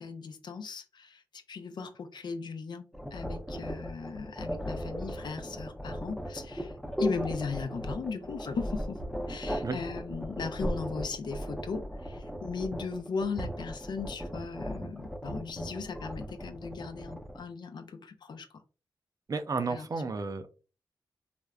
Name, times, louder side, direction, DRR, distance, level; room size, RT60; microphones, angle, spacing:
voice 1, 0.0-6.7 7.0-9.0 9.3-18.5 19.7-19.9, left 5 dB, 65° left, 0.5 m, -37 dB
sound 1, 2.9-17.5, equal, ahead, 0.6 m, -37 dB
voice 2, 19.3-20.5, right 4 dB, 45° right, 0.5 m, -32 dB
3.3 x 2.1 x 2.3 m
cardioid pair, 50°, 8 cm